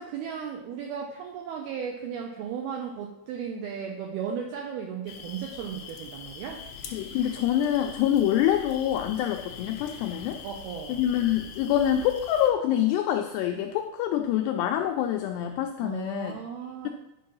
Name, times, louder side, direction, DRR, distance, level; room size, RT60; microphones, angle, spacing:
voice 1, 0.0-6.6 10.4-11.0 15.8-16.9, right 7 dB, 85° right, 2 dB, 2.2 m, -35 dB
sound 1, 5.1-12.5, left 6 dB, 70° left, 2.5 m, -43 dB
voice 2, 6.9-10.4 10.9-16.3, left 11 dB, 85° left, 4 dB, 2.4 m, -26 dB
11.0 x 5.3 x 5.5 m, 0.88 s
omnidirectional pair, 5.4 m